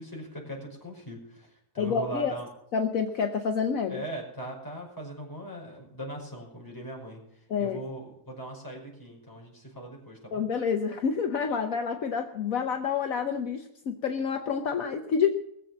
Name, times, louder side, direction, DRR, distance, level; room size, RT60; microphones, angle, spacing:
voice 1, 0.0-2.5 3.9-7.2 7.6-10.4, right 1 dB, 10° left, -2 dB, 5.6 m, -40 dB
voice 2, 1.8-2.3 2.7-4.0 7.5-7.8 10.3-15.3, left 6 dB, 65° left, 6 dB, 1.3 m, -28 dB
20.0 x 7.6 x 7.3 m, 0.78 s
omnidirectional pair, 1.7 m